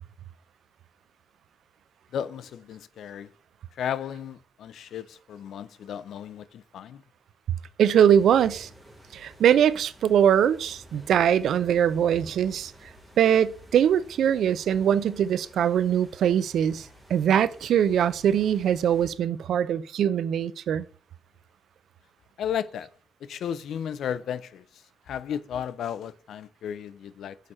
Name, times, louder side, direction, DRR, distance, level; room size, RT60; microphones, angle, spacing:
voice 1, 2.1-3.3 3.8-7.0 22.4-22.9 23.3-24.6 25.1-27.4, left 9 dB, 80° left, 0.4 m, -34 dB
sound 1, 7.8-19.1, equal, 10° right, 2.7 m, -50 dB
voice 2, 7.8-8.7 9.1-12.7 13.2-20.9, right 9 dB, 85° right, 0.4 m, -22 dB
6.5 x 4.8 x 4.2 m
wide cardioid pair, 155°, 0 cm